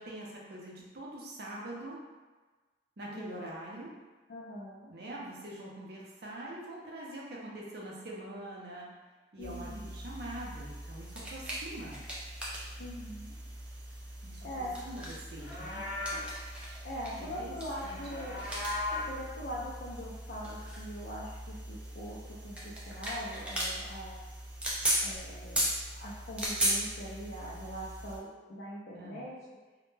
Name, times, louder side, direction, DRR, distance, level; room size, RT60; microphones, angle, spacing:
voice 1, 0.0-2.0 3.0-3.9 4.9-8.9 9.3-12.0 14.2-15.9 17.0-17.6 17.8-18.0 28.9-29.3, right 1 dB, 65° right, -3 dB, 0.5 m, -44 dB
voice 2, 3.1-3.5 4.3-4.9 9.4-9.9 12.8-13.3 14.4-14.8 16.8-18.4 19.1-24.2 25.0-25.7 26.0-29.6, equal, 60° left, -8 dB, 0.4 m, -42 dB
sound 1, 9.4-28.2, right 1 dB, 5° right, 0.4 m, -38 dB
Livestock farm animals working animals, 15.2-16.4 17.7-19.2, left 2 dB, 85° left, 0.8 m, -37 dB
2.1 x 2.1 x 3.1 m, 1.3 s
head